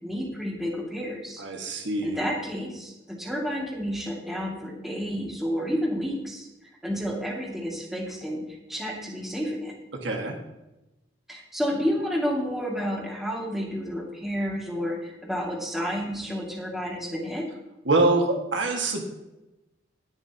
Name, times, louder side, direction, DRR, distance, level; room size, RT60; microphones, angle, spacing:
voice 1, 0.0-1.4 2.0-6.5 6.8-9.7 11.3-17.5, equal, ahead, -3 dB, 2.5 m, -30 dB
voice 2, 1.4-2.2 10.0-10.4 17.9-19.0, right 2 dB, 75° right, 2 dB, 2.0 m, -24 dB
19.0 x 6.7 x 3.0 m, 0.97 s
head